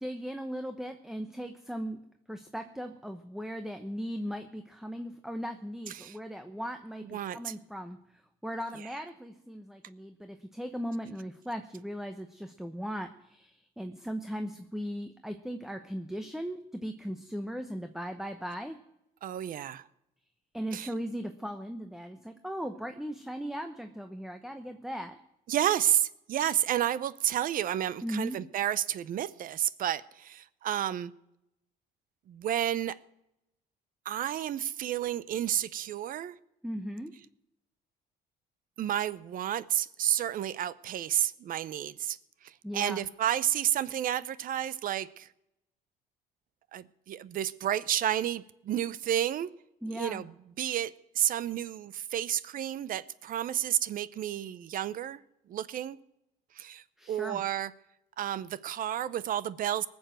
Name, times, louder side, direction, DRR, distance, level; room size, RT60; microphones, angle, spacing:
voice 1, 0.0-2.0 2.3-8.0 8.4-18.8 20.5-25.2 28.0-28.4 36.6-37.1 42.6-43.1 49.8-50.2 57.0-57.4, equal, ahead, 0.9 m, -38 dB
voice 2, 5.9-6.2 7.0-7.5 19.2-19.9 20.7-20.9 25.5-31.1 32.3-33.0 34.0-36.4 38.8-45.3 46.7-49.5 49.9-55.2 55.5-56.0 56.5-57.7 58.2-59.9, right 11 dB, 55° right, 0.7 m, -31 dB
19.0 x 7.2 x 7.6 m
cardioid pair, 110°, 17 cm